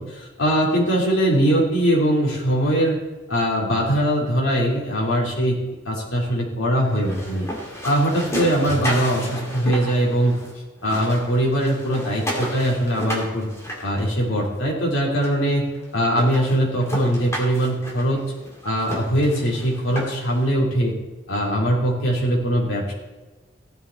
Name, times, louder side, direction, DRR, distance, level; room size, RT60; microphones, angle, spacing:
voice 1, 0.0-3.0 3.3-5.6 5.9-7.5 7.8-10.4 10.8-13.5 13.8-15.7 15.9-18.2 18.6-20.9 21.3-22.9, equal, 75° left, -3 dB, 3.5 m, -21 dB
sound 1, 6.8-10.5 10.8-14.6 15.2-15.3 15.8-15.9 16.2-20.4, equal, 15° left, 2.7 m, -32 dB
16.0 x 9.8 x 4.2 m, 1.2 s
head